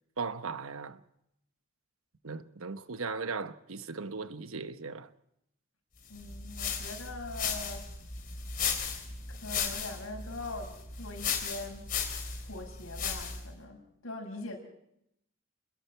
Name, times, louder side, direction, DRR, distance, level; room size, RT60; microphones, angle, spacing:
voice 1, 0.2-1.0 2.2-5.1, right 4 dB, 80° right, 1.0 m, -37 dB
voice 2, 6.1-7.9 9.3-11.9 12.5-14.6, left 2 dB, 75° left, 6.3 m, -42 dB
sound 1, 6.1-13.5, left 6 dB, 40° left, 3.7 m, -36 dB
28.5 x 21.0 x 4.5 m
head